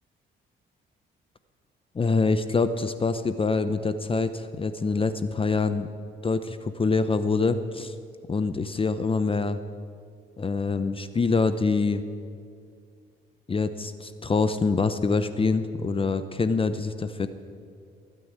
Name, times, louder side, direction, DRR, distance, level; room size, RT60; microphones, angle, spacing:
voice 1, 1.9-5.9 6.2-7.9 8.3-9.6 10.4-12.0 13.5-17.3, left 4 dB, 25° left, 11 dB, 0.7 m, -25 dB
16.0 x 9.3 x 9.6 m, 2.3 s
cardioid pair, 90°, 20 cm